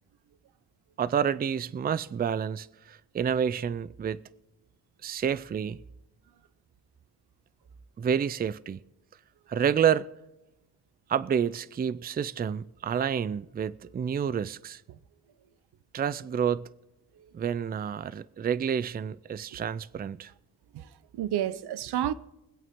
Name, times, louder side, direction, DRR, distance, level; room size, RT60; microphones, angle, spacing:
voice 1, 1.0-4.2 5.0-5.8 8.0-8.8 9.5-10.1 11.1-14.8 15.9-16.6 17.3-20.3, right 8 dB, 25° right, 0.4 m, -29 dB
voice 2, 20.7-22.1, right 11 dB, 90° right, 0.7 m, -31 dB
23.5 x 8.5 x 3.6 m
cardioid pair, 105°, 38 cm